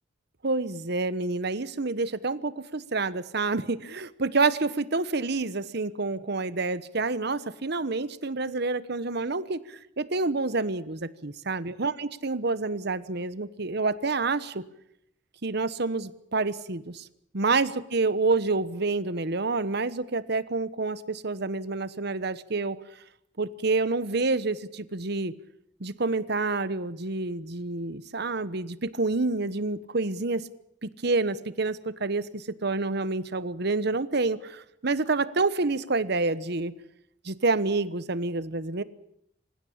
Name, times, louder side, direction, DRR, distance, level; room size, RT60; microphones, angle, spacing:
voice 1, 0.4-14.6 15.4-17.1 17.3-22.8 23.4-25.3 25.8-30.5 30.8-36.7 37.2-38.8, right 3 dB, 60° right, 15 dB, 1.1 m, -28 dB
26.0 x 16.0 x 8.8 m, 0.75 s
head